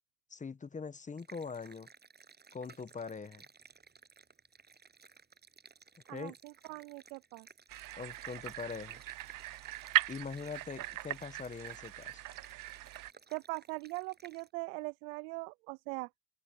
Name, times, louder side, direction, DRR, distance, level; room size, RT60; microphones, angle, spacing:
voice 1, 0.3-1.9 2.5-3.4 6.1-6.4 8.0-9.0 10.1-12.2, left 5 dB, 20° left, 1.2 m, -42 dB
sound 1, 1.2-14.5, right 5 dB, 25° right, 7.7 m, -59 dB
voice 2, 6.1-7.5 13.3-16.1, right 28 dB, 80° right, 0.7 m, -41 dB
sound 2, 7.7-13.1, right 16 dB, 50° right, 1.0 m, -38 dB
supercardioid pair, 100°, 41 cm